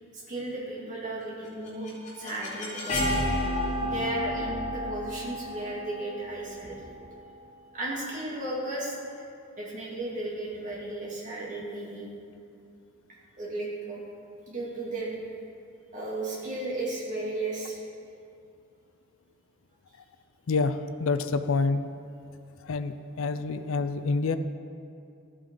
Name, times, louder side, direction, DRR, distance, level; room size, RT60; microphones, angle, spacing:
voice 1, 0.1-3.2 3.8-7.0 7.7-8.9 9.6-12.1 13.4-14.0 14.5-15.2 15.9-17.8, right 2 dB, 35° right, -5 dB, 2.3 m, -34 dB
sound 1, 1.4-7.3, left 1 dB, 35° left, 2.4 m, -32 dB
voice 2, 20.5-21.9 22.6-24.4, left 4 dB, 70° left, 11 dB, 0.4 m, -27 dB
13.5 x 8.7 x 3.8 m, 2.6 s
head